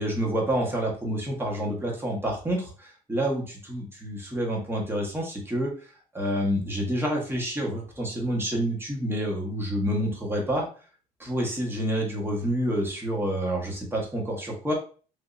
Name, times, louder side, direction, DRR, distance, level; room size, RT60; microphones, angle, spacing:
voice 1, 0.0-5.7 6.1-10.7 11.2-14.7, equal, 15° right, -1 dB, 1.2 m, -28 dB
3.5 x 2.7 x 2.5 m, 0.39 s
cardioid pair, 110°, 17 cm